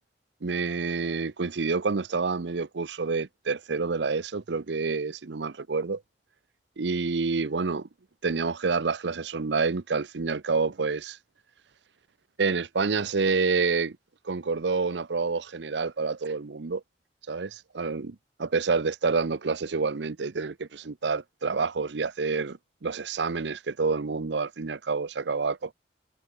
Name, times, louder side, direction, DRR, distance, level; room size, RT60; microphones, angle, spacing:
voice 1, 0.4-6.0 6.8-7.9 8.2-11.2 12.4-14.0 14.2-16.8 17.3-25.7, right 4 dB, 80° right, 0.7 m, -28 dB
head